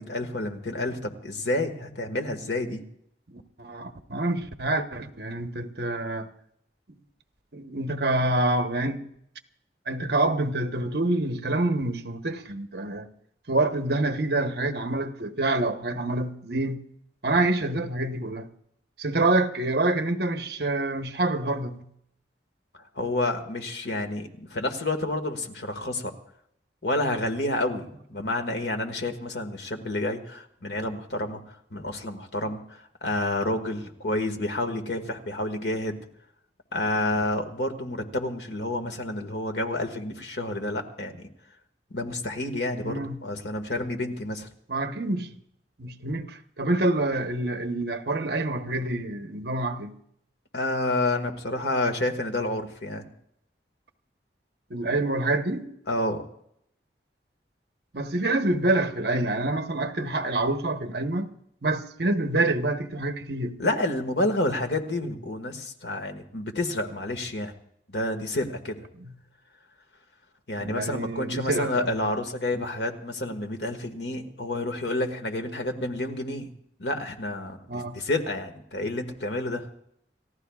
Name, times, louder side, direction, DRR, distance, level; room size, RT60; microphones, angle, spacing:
voice 1, 0.0-2.8 23.0-26.1 26.8-31.4 31.7-36.0 36.7-41.3 41.9-44.5 50.5-53.0 55.9-56.2 63.6-67.5 67.9-68.9 70.5-76.5 76.8-79.7, left 1 dB, 75° left, 1.9 m, -29 dB
voice 2, 3.3-6.3 7.5-9.0 9.9-13.1 13.5-16.8 17.2-18.5 19.0-21.8 42.8-43.3 44.7-45.3 45.8-50.0 54.7-55.7 57.9-61.3 61.6-63.6 69.0-69.1 70.6-71.9 77.7-78.0, right 2 dB, 65° right, 1.2 m, -27 dB
29.5 x 15.0 x 2.4 m
head